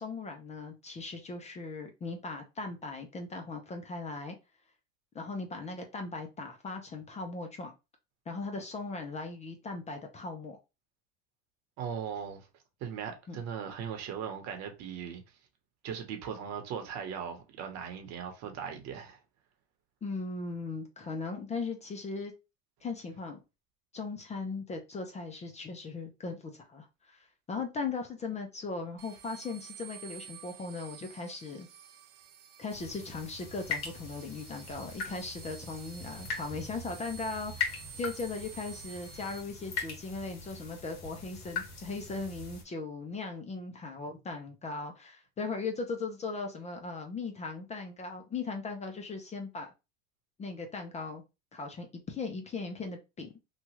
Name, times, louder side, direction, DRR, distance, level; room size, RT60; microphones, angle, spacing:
voice 1, 0.0-4.4 5.1-7.7 8.3-10.6 13.3-13.4 20.0-22.3 22.8-23.4 23.9-31.7 32.6-49.7 50.4-51.2 51.5-53.3, left 3 dB, 20° left, 0.6 m, -38 dB
voice 2, 11.8-12.5 12.8-15.2 15.8-19.2, right 7 dB, 55° right, 1.0 m, -38 dB
sound 1, 29.0-39.4, right 8 dB, 80° right, 0.6 m, -51 dB
sound 2, 32.7-42.6, left 5 dB, 55° left, 1.5 m, -40 dB
2.9 x 2.3 x 2.9 m
supercardioid pair, 110°, 33 cm